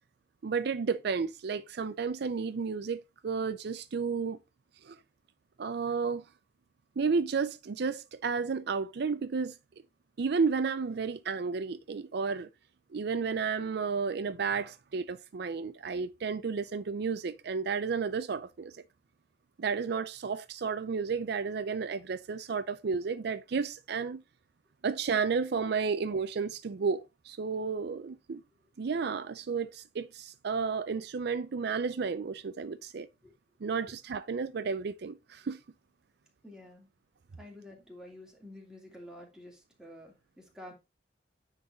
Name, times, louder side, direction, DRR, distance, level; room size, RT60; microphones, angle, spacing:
voice 1, 0.4-4.4 4.8-5.0 5.6-6.2 7.0-9.6 10.2-12.5 12.9-18.7 19.6-24.2 24.8-28.4 28.8-33.1 33.6-35.6, right 5 dB, 65° right, 0.5 m, -32 dB
voice 2, 36.4-36.9 37.4-40.7, left 1 dB, 5° right, 2.6 m, -49 dB
9.7 x 4.0 x 3.9 m
head